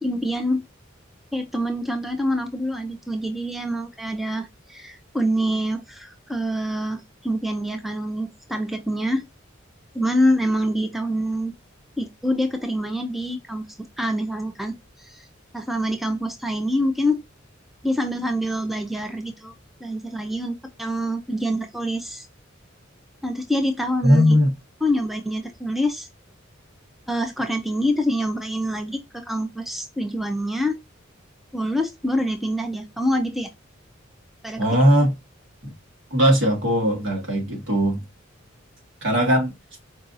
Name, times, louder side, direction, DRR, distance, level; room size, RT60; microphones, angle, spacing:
voice 1, 0.0-0.6 1.3-9.2 9.9-11.5 12.0-13.7 14.0-15.2 15.5-17.2 17.8-19.5 19.8-22.3 23.2-24.4 24.8-26.1 27.1-30.8 31.5-33.5 34.4-34.6, equal, ahead, 0.4 m, -26 dB
voice 2, 24.0-24.5 34.6-35.1 35.6-35.7 36.1-38.0 39.0-39.5, equal, 65° right, 1.5 m, -19 dB
4.7 x 2.6 x 2.4 m
head